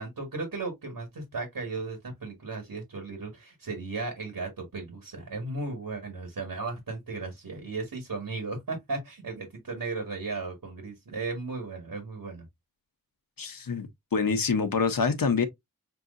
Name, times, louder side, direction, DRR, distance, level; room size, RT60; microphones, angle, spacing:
voice 1, 0.0-12.4, right 3 dB, 80° right, 1.7 m, -35 dB
voice 2, 13.4-15.5, left 5 dB, 75° left, 0.9 m, -26 dB
6.1 x 2.8 x 2.5 m
wide cardioid pair, 65°, 34 cm